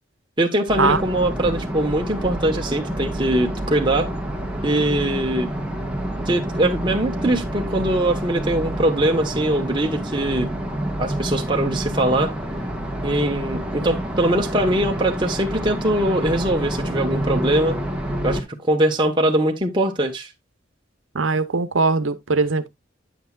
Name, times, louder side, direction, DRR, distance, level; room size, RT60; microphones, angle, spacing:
voice 1, 0.4-4.1 4.6-5.5 6.3-10.5 11.0-12.3 13.0-17.8 18.2-20.3, right 1 dB, 25° right, 1.2 m, -22 dB
sound 1, 0.7-18.4, right 1 dB, 5° right, 1.3 m, -28 dB
voice 2, 21.1-22.7, right 4 dB, 85° right, 0.8 m, -20 dB
9.3 x 7.9 x 2.4 m
head